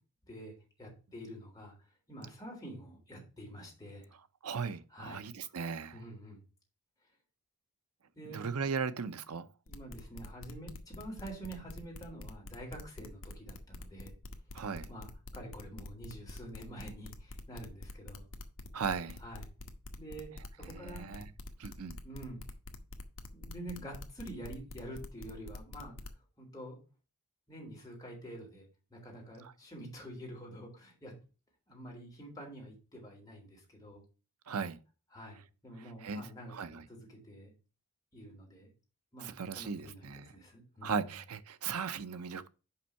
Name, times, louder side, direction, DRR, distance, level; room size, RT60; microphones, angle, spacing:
voice 1, 0.3-1.7 2.1-4.1 4.9-5.2 5.9-6.4 8.2-8.4 9.7-14.1 14.9-18.2 19.2-19.5 20.0-20.3 20.7-21.1 22.0-22.4 23.3-25.9 26.4-26.8 27.5-28.7 28.9-31.1 31.7-34.0 35.1-37.5 38.1-38.7 39.1-40.0 40.3-40.9, right 1 dB, 15° left, 3.5 m, -47 dB
voice 2, 4.4-6.0 8.3-9.5 14.5-14.9 18.7-19.2 20.6-21.3 21.6-22.0 29.4-29.5 34.5-34.8 35.8-36.9 39.2-40.3 40.8-42.5, right 5 dB, 75° right, 0.7 m, -37 dB
sound 1, 9.7-26.1, left 2 dB, 65° left, 1.0 m, -46 dB
5.7 x 5.3 x 5.6 m
head